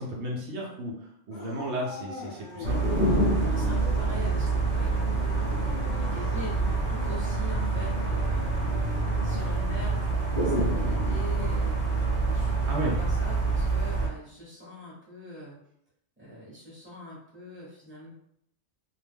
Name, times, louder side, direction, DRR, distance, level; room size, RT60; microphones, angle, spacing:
voice 1, 0.0-2.9 12.6-13.0, right 1 dB, 70° right, -3 dB, 0.8 m, -33 dB
Dog / Siren, 1.3-3.5 3.8-3.9 4.9-6.4, left 3 dB, 70° left, 0.9 m, -42 dB
sound 1, 2.6-14.1, right 3 dB, 40° right, 0.7 m, -26 dB
voice 2, 3.4-5.1 5.9-8.7 9.1-12.6 13.0-15.6 16.2-18.1, left 1 dB, 10° right, -7 dB, 1.0 m, -43 dB
2.3 x 2.1 x 3.3 m, 0.73 s
omnidirectional pair, 1.2 m